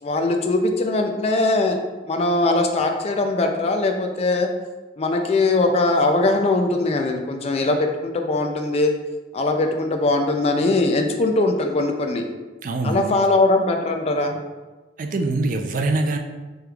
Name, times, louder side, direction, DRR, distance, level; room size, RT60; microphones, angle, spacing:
voice 1, 0.0-1.8 2.1-4.5 5.0-8.9 9.3-12.3 12.8-14.4, left 2 dB, 35° left, 4 dB, 0.3 m, -21 dB
voice 2, 12.6-13.1 15.0-16.2, right 2 dB, 45° right, 5 dB, 0.3 m, -23 dB
5.0 x 3.1 x 2.3 m, 1.3 s
head